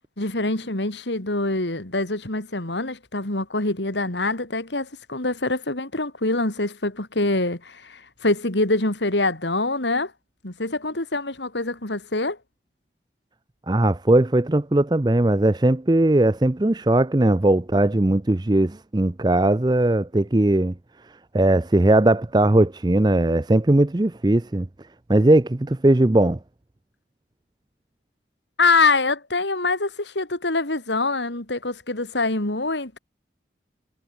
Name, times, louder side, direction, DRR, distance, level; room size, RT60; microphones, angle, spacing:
voice 1, 0.2-10.1 10.4-12.4 28.6-33.0, left 3 dB, 90° left, 3.4 m, -24 dB
voice 2, 13.7-20.7 21.3-24.7 25.1-26.4, right 1 dB, 25° right, 0.6 m, -19 dB
head